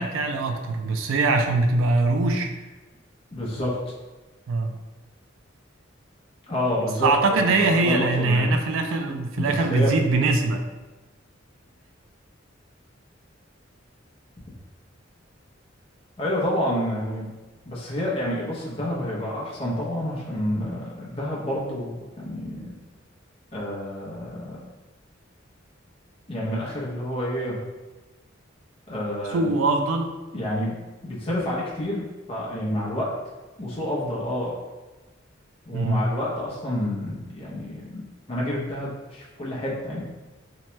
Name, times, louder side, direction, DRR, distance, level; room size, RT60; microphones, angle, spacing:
voice 1, 0.0-2.5 4.5-4.7 7.0-10.6 29.3-30.1 35.7-36.0, right 3 dB, 85° right, 5 dB, 0.3 m, -22 dB
voice 2, 3.3-3.7 6.5-8.5 9.4-9.9 16.2-17.3 17.7-22.7 23.5-24.6 26.3-27.6 28.9-29.5 30.3-30.8 31.0-32.0 32.3-33.1 33.6-34.6 35.7-38.0 38.3-40.0, left 1 dB, 30° left, -6 dB, 0.6 m, -29 dB
2.9 x 2.1 x 3.0 m, 1.2 s
head